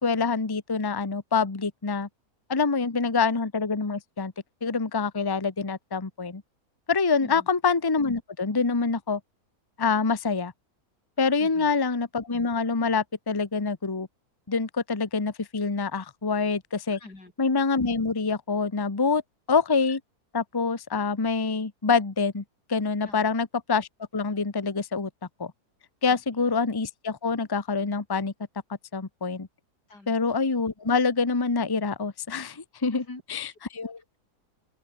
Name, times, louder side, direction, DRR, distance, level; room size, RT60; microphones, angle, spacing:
voice 1, 0.0-2.1 2.5-4.3 4.6-6.4 6.9-9.2 9.8-10.5 11.2-14.1 14.5-17.0 17.4-19.2 19.5-20.0 20.3-22.4 22.7-25.1 25.4-25.5 26.0-28.3 28.9-29.5 30.1-33.0 33.3-34.0, left 4 dB, 15° left, 1.0 m, -26 dB
voice 2, 11.4-11.7 17.0-17.3 23.0-23.4 26.1-26.5 29.9-30.2 32.9-33.2 33.5-33.6, left 2 dB, 90° left, 6.5 m, -45 dB
omnidirectional pair, 1.7 m